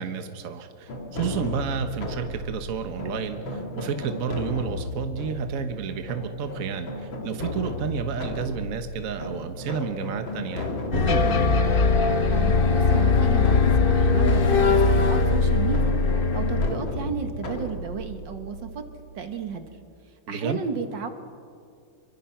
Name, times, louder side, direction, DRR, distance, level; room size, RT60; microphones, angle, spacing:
voice 1, 0.0-11.6 20.3-20.6, right 6 dB, 50° right, 7 dB, 1.5 m, -31 dB
sound 1, 0.9-19.6, left 1 dB, 80° left, 2.9 m, -35 dB
sound 2, 10.9-16.7, left 4 dB, 35° left, 0.9 m, -20 dB
voice 2, 12.3-16.0 16.3-18.9 19.2-19.7 20.3-21.1, right 6 dB, 70° right, 7 dB, 2.1 m, -33 dB
27.5 x 23.5 x 5.8 m, 2.3 s
omnidirectional pair, 2.1 m